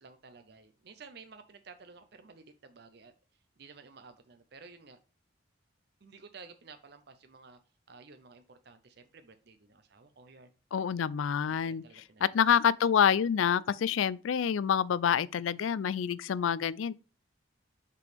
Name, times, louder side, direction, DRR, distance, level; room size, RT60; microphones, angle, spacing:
voice 1, 0.0-5.0 6.0-7.6 7.9-10.5 11.6-12.2, right 4 dB, 55° right, 0.6 m, -53 dB
voice 2, 10.7-16.9, left 8 dB, 85° left, 0.4 m, -27 dB
6.6 x 5.1 x 3.3 m
head